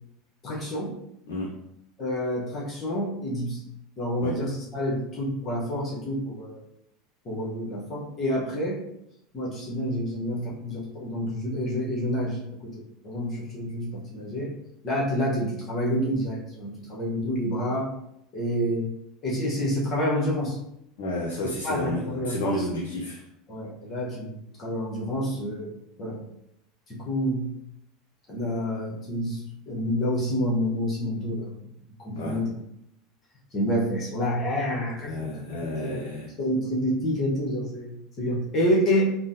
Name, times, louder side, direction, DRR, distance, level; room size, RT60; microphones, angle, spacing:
voice 1, 0.4-0.9 2.0-3.6 4.0-6.6 7.2-8.8 9.3-14.5 14.8-17.9 18.3-18.9 19.2-20.6 21.4-22.7 23.5-24.3 24.6-25.7 26.0-26.2 26.9-27.5 28.3-29.4 29.7-31.5 32.0-32.5 33.5-35.3 35.8-36.1 36.4-39.2, equal, 35° left, -4 dB, 0.9 m, -28 dB
voice 2, 21.0-23.2 32.2-32.4 35.1-36.3, left 1 dB, 65° left, -2 dB, 0.5 m, -31 dB
3.6 x 2.0 x 2.7 m, 0.77 s
figure-of-eight pair, 75°, 0 cm